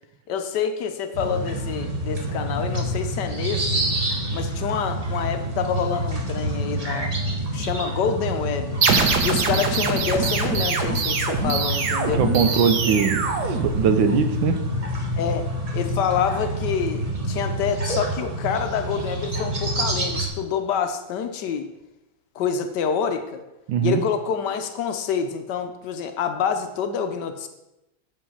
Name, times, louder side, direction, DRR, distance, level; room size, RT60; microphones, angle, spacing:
voice 1, 0.3-3.7 4.3-7.1 7.5-8.8 9.2-12.2 15.1-15.5 15.7-21.7 22.3-23.4 23.8-27.5, left 7 dB, 70° left, 7 dB, 1.1 m, -27 dB
sound 1, 1.1-20.3, right 1 dB, 25° right, 1.0 m, -27 dB
sound 2, 8.8-14.2, right 5 dB, 60° right, 1.3 m, -24 dB
voice 2, 12.2-14.6 23.7-24.0, right 7 dB, 75° right, 7 dB, 1.4 m, -21 dB
7.3 x 5.4 x 5.5 m, 0.95 s
omnidirectional pair, 2.2 m